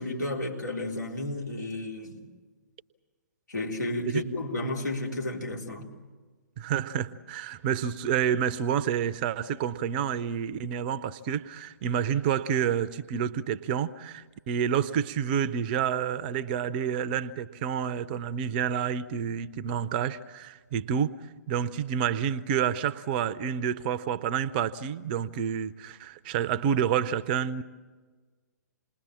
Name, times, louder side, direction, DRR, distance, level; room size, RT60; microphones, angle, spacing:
voice 1, 0.0-2.3 3.5-5.9, left 1 dB, 75° left, 4.0 m, -32 dB
voice 2, 6.6-21.1 21.5-27.6, right 8 dB, 30° right, 0.7 m, -29 dB
28.5 x 20.5 x 7.5 m
figure-of-eight pair, 125°, 10 cm